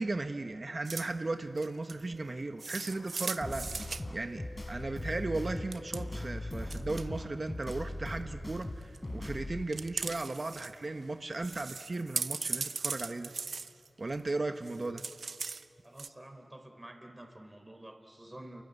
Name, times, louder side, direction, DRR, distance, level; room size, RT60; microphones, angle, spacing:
voice 1, 0.0-4.4 4.7-13.3 14.0-15.0, right 2 dB, 50° right, 7 dB, 1.3 m, -36 dB
sound 1, 0.9-1.1 1.6-2.0 2.6-4.0 5.6-6.0 6.6-7.1 7.5-7.9 8.6-9.0 9.7-10.7 11.0-11.1 11.4-14.3 14.7-15.7 16.0-16.1, right 4 dB, 75° right, 0.7 m, -38 dB
sound 2, 1.8-6.6 7.0-7.4, left 1 dB, 80° left, 4.9 m, -55 dB
sound 3, 3.4-9.6, left 1 dB, 30° left, 3.9 m, -40 dB
voice 2, 15.8-18.6, right 1 dB, 25° right, 4 dB, 3.9 m, -49 dB
30.0 x 23.5 x 8.4 m, 2.6 s
cardioid pair, 45°, 0 cm